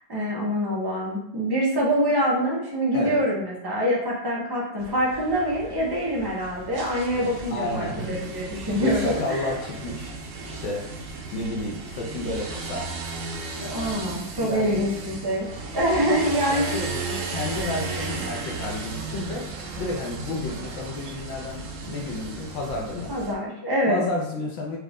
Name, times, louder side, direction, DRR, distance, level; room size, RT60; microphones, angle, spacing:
voice 1, 0.1-9.4 13.7-15.5 15.7-16.8 23.1-24.0, equal, 25° right, -5 dB, 0.5 m, -25 dB
sound 1, 4.8-23.3, right 3 dB, 85° right, 0.7 m, -35 dB
voice 2, 7.5-8.2 8.8-10.2 10.4-10.8 11.3-12.9 13.6-13.9 14.4-14.8 16.5-19.5 19.8-23.1 23.9-24.8, left 2 dB, 80° left, -1 dB, 1.5 m, -31 dB
4.3 x 2.5 x 3.5 m, 0.74 s
omnidirectional pair, 2.1 m